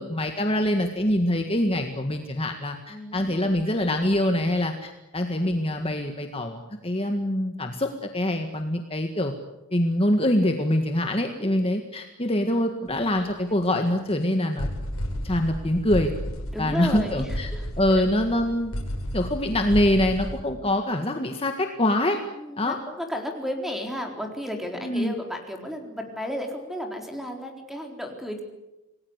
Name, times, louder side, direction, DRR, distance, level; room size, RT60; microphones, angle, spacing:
voice 1, 0.0-9.3 9.7-14.7 15.2-16.1 16.6-17.5 17.8-18.7 19.1-22.2 22.6-22.7 24.8-25.1, left 1 dB, 25° left, 4 dB, 1.8 m, -24 dB
voice 2, 2.9-3.6 11.4-11.6 16.5-18.0 22.4-28.4, left 1 dB, ahead, 3 dB, 4.0 m, -33 dB
sound 1, 12.9-13.2 13.6-13.7 14.1-14.2 14.6-20.4, equal, 70° left, 6.0 m, -32 dB
27.5 x 19.5 x 8.2 m, 0.99 s
head